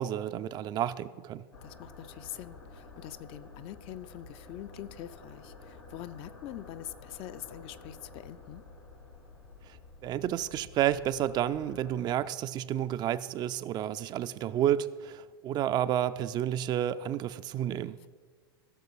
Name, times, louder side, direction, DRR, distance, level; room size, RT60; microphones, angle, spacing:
voice 1, 0.0-1.5 9.7-9.8 10.0-18.0, right 11 dB, 35° right, 12 dB, 0.4 m, -30 dB
sound 1, 1.5-12.0, left 3 dB, 85° left, 1.8 m, -51 dB
voice 2, 1.6-8.6 18.0-18.1, left 12 dB, 45° left, 13 dB, 0.5 m, -44 dB
15.5 x 6.6 x 4.8 m, 1.6 s
figure-of-eight pair, 90°, 13 cm